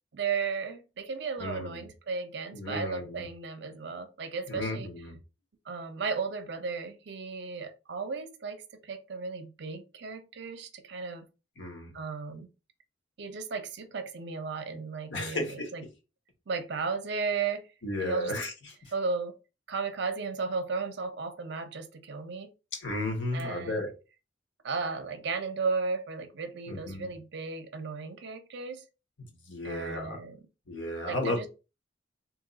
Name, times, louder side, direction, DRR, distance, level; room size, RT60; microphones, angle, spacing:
voice 1, 0.1-4.9 5.7-11.2 11.9-12.5 13.2-15.8 16.5-17.7 18.0-18.3 18.9-19.3 19.7-22.5 23.3-23.8 24.6-28.8 29.6-30.4 31.0-31.5, right 4 dB, 60° right, 0.5 m, -35 dB
voice 2, 1.4-1.8 2.5-3.2 4.5-5.2 11.6-11.9 15.1-15.7 17.8-18.5 18.8-18.9 22.7-23.9 26.7-27.1 29.2-30.2 30.7-31.5, left 1 dB, 65° left, 1.1 m, -34 dB
2.8 x 2.3 x 3.8 m
head